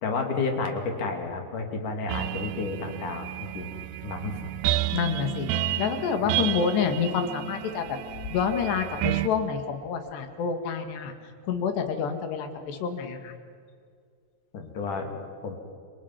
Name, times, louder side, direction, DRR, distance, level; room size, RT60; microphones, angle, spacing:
voice 1, 0.0-4.4 6.2-6.4 14.5-15.6, left 4 dB, 45° left, 3 dB, 3.7 m, -31 dB
sound 1, 2.1-9.3, right 13 dB, 85° right, 2.2 m, -31 dB
voice 2, 4.9-5.5 5.8-8.0 8.3-11.1 11.4-13.3, left 6 dB, 65° left, 6 dB, 3.8 m, -28 dB
29.0 x 26.5 x 6.0 m, 2.1 s
omnidirectional pair, 5.6 m